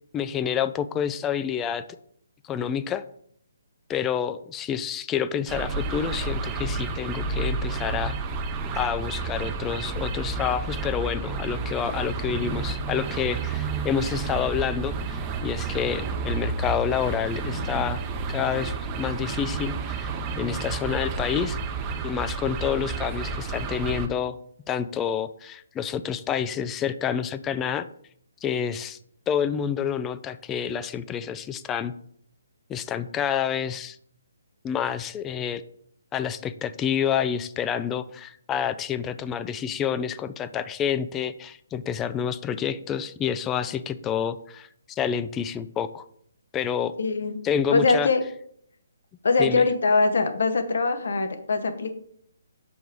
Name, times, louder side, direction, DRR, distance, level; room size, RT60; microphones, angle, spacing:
voice 1, 0.1-1.8 2.4-3.0 3.9-8.2 8.7-18.0 18.3-21.6 22.0-24.4 24.7-27.9 28.4-29.0 29.3-31.9 32.7-34.0 34.6-35.6 36.1-46.0 46.5-46.9 47.4-48.1 49.4-49.6, left 8 dB, 15° left, 12 dB, 0.3 m, -28 dB
sound 1, 5.5-24.1, right 4 dB, 20° right, 0.6 m, -30 dB
voice 2, 47.0-47.4 47.7-48.2 49.2-51.9, left 3 dB, 65° left, 8 dB, 0.9 m, -22 dB
5.4 x 4.6 x 4.7 m, 0.67 s
figure-of-eight pair, 140°, 0 cm